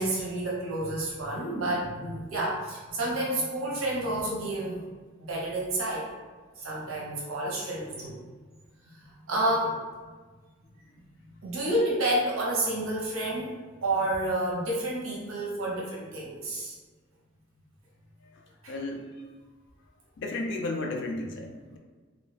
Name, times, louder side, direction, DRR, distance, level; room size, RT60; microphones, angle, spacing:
voice 1, 0.0-4.9 5.2-6.1 6.6-8.2 8.8-9.8 11.4-16.8 18.6-18.7, right 1 dB, 80° right, -4 dB, 0.6 m, -30 dB
voice 2, 18.7-19.2 20.2-21.8, left 2 dB, 55° left, 2 dB, 0.4 m, -33 dB
2.2 x 2.1 x 3.1 m, 1.4 s
head